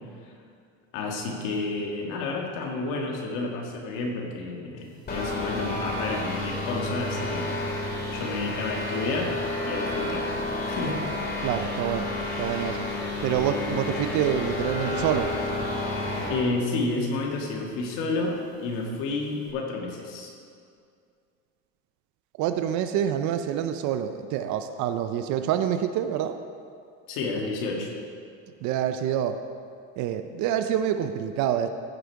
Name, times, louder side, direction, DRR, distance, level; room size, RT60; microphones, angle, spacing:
voice 1, 0.9-7.6 8.1-9.3 9.6-10.3 10.6-11.0 11.3-11.5 16.3-20.3 27.1-27.9, left 3 dB, 65° left, 0 dB, 1.8 m, -30 dB
sound 1, 5.1-16.4, left 2 dB, 30° left, 2.2 m, -30 dB
voice 2, 11.4-12.1 12.4-12.8 13.2-15.3 22.4-26.4 28.6-29.4 30.0-31.7, right 10 dB, 55° right, 9 dB, 0.6 m, -27 dB
15.0 x 5.0 x 4.6 m, 2.3 s
supercardioid pair, 125°, 34 cm